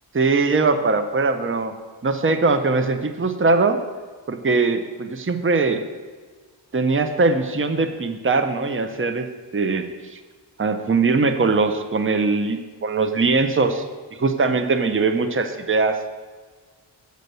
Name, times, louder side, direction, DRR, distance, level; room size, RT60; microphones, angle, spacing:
voice 1, 0.1-1.7 2.0-3.8 4.3-5.8 6.7-9.3 9.5-10.2 10.6-13.8 14.2-16.0, right 3 dB, 30° right, 8 dB, 0.7 m, -21 dB
7.9 x 6.6 x 6.7 m, 1.4 s
wide cardioid pair, 85°, 44 cm